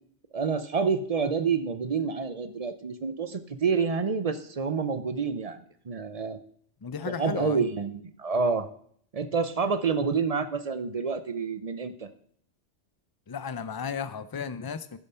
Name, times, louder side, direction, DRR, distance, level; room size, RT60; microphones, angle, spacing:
voice 1, 0.3-6.4 7.1-8.7 9.1-12.1, right 5 dB, 40° right, 11 dB, 0.6 m, -28 dB
voice 2, 6.8-7.6 13.3-15.0, left 6 dB, 35° left, 13 dB, 0.3 m, -34 dB
11.5 x 7.0 x 5.6 m, 0.62 s
omnidirectional pair, 1.1 m